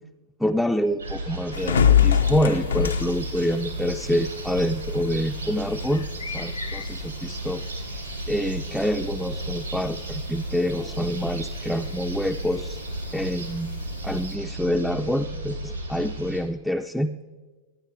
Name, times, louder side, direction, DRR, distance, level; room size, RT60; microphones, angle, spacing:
voice 1, 0.4-6.0 6.3-7.6 8.3-12.8 13.1-13.8 14.0-17.1, equal, ahead, 4 dB, 0.4 m, -26 dB
sound 1, 1.0-16.4, right 1 dB, 85° right, 3.1 m, -34 dB
sound 2, 1.5-14.4, left 8 dB, 70° left, 0.5 m, -29 dB
13.0 x 9.5 x 4.7 m, 1.3 s
figure-of-eight pair, 90°, 0 cm